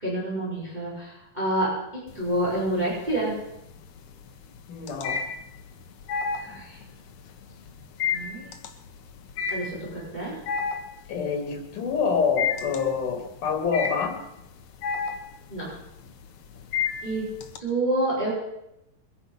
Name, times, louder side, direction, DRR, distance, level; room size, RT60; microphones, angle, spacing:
voice 1, 0.0-3.4 6.4-6.8 8.1-8.5 9.5-10.4 15.5-15.7 17.0-17.3 17.6-18.3, right 1 dB, 15° right, -6 dB, 5.1 m, -28 dB
sound 1, 2.1-2.7 3.1-17.6, left 6 dB, 70° left, 2.4 m, -31 dB
voice 2, 4.7-5.2 11.1-14.2, left 6 dB, 90° left, 4 dB, 3.7 m, -26 dB
22.0 x 10.0 x 5.4 m, 0.85 s
omnidirectional pair, 3.6 m